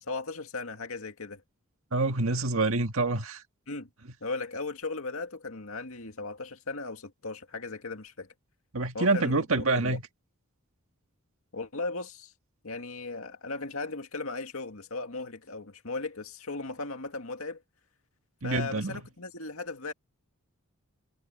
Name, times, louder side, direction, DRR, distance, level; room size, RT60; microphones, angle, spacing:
voice 1, 0.0-1.4 3.7-3.9 4.2-8.3 8.9-10.0 11.5-12.3 12.6-17.6 18.4-19.9, left 3 dB, 70° left, 2.2 m, -37 dB
voice 2, 1.9-3.4 8.7-10.0 18.4-19.0, right 3 dB, 70° right, 1.7 m, -27 dB
head